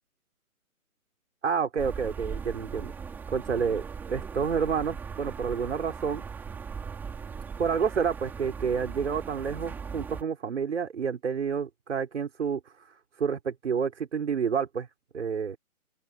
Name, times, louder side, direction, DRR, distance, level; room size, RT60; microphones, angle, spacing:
voice 1, 1.4-2.9 3.3-3.8 4.1-6.3 7.6-12.6 13.2-14.9 15.1-15.6, right 6 dB, 50° right, 5.5 m, -29 dB
sound 1, 1.8-10.2, right 6 dB, 5° right, 3.4 m, -39 dB
open air
hypercardioid pair, 175°, 44 cm